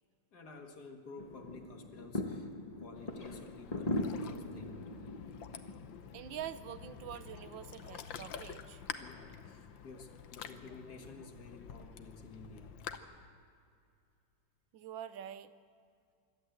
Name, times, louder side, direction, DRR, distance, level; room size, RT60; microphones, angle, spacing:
voice 1, 0.3-2.5 2.8-4.8 9.0-12.8, left 3 dB, 55° left, 4 dB, 2.2 m, -52 dB
sound 1, 1.2-13.2, left 2 dB, 25° left, 0.9 m, -43 dB
Ocean, 2.9-13.0, left 8 dB, 80° left, 1.7 m, -48 dB
voice 2, 6.1-8.8 14.7-15.5, right 10 dB, 80° right, 13 dB, 1.5 m, -45 dB
26.0 x 13.0 x 7.9 m, 2.4 s
omnidirectional pair, 2.1 m